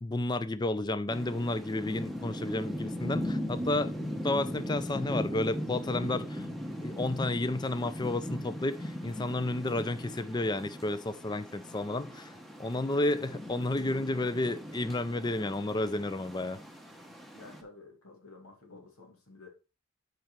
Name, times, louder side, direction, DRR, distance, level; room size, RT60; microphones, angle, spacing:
voice 1, 0.0-3.9 4.2-6.5 6.8-12.3 12.6-16.6, left 2 dB, 20° left, 0.4 m, -31 dB
sound 1, 1.1-17.6, equal, ahead, 0.8 m, -39 dB
voice 2, 17.3-19.5, left 3 dB, 90° left, 2.2 m, -52 dB
7.5 x 4.5 x 4.5 m
head